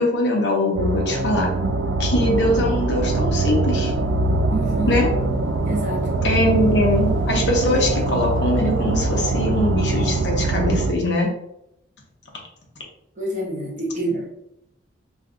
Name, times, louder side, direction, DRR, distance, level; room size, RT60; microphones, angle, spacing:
voice 1, 0.0-1.5 2.0-3.9 4.9-5.1 6.2-11.3, left 1 dB, 65° left, -1 dB, 0.9 m, -22 dB
sound 1, 0.8-10.9, right 2 dB, 75° right, 0.3 m, -22 dB
voice 2, 4.5-5.0 5.6-6.1 13.2-14.3, right 2 dB, 40° right, -3 dB, 1.0 m, -27 dB
2.5 x 2.3 x 3.7 m, 0.80 s
head